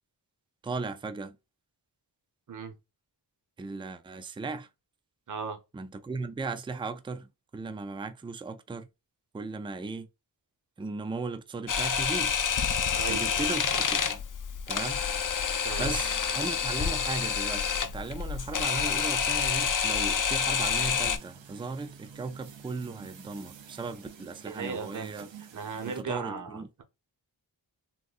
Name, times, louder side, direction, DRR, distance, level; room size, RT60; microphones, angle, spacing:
voice 1, 0.6-1.4 3.6-4.7 5.7-8.9 9.3-10.1 10.8-12.4 13.1-14.2 14.7-15.0 15.8-25.3 25.8-26.7, right 3 dB, 15° right, 0.3 m, -37 dB
voice 2, 5.3-5.6 12.9-13.2 15.6-15.9 24.4-25.1 25.5-26.8, right 5 dB, 45° right, 0.8 m, -36 dB
Camera, 11.7-21.2, left 7 dB, 45° left, 0.5 m, -28 dB
sound 1, 20.4-26.0, right 7 dB, 90° right, 0.7 m, -49 dB
3.7 x 2.5 x 2.4 m
wide cardioid pair, 80°, 44 cm